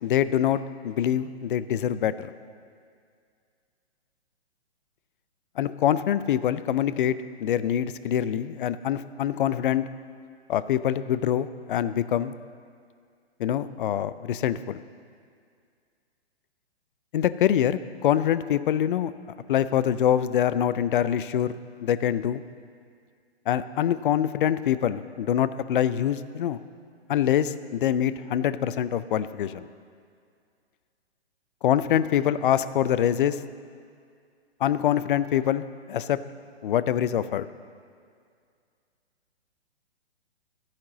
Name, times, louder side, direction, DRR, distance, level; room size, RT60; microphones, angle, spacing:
voice 1, 0.0-2.3 5.6-9.8 10.5-12.3 13.4-14.8 17.1-19.1 19.5-22.4 23.5-26.6 27.1-29.7 31.6-33.4 34.6-36.2 36.6-37.5, left 10 dB, 50° left, 14 dB, 0.5 m, -25 dB
13.5 x 5.9 x 7.2 m, 2.2 s
figure-of-eight pair, 125°, 33 cm